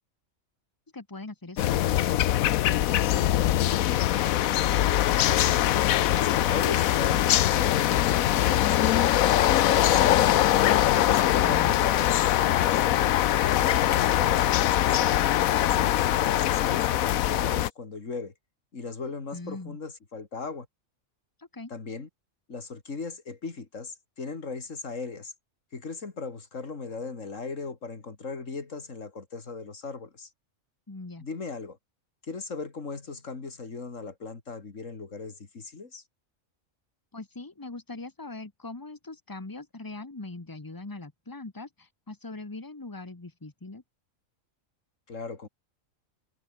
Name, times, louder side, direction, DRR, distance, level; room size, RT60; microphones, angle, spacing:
voice 1, 0.9-2.3 19.3-19.8 21.4-21.7 30.9-31.2 37.1-43.8, left 2 dB, 15° left, 1.4 m, -41 dB
sound 1, 1.6-17.7, left 13 dB, 85° left, 1.1 m, -22 dB
voice 2, 6.1-10.3 10.9-12.8 13.4-15.2 15.6-18.3 18.7-20.7 21.7-22.1 22.5-25.3 25.7-30.3 31.2-31.8 32.2-36.0 45.1-45.5, left 4 dB, 70° left, 3.0 m, -38 dB
omnidirectional pair, 1.4 m